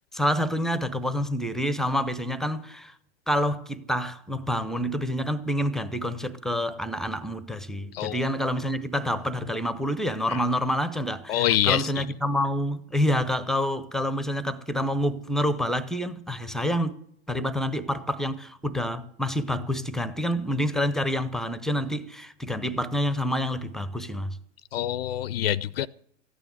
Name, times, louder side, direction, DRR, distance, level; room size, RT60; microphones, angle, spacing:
voice 1, 0.1-3.0 3.3-16.9 17.3-24.4, equal, ahead, 0.6 m, -27 dB
voice 2, 11.3-12.1 24.7-25.9, left 12 dB, 55° left, 0.5 m, -26 dB
14.0 x 9.1 x 9.4 m
figure-of-eight pair, 95°, 37 cm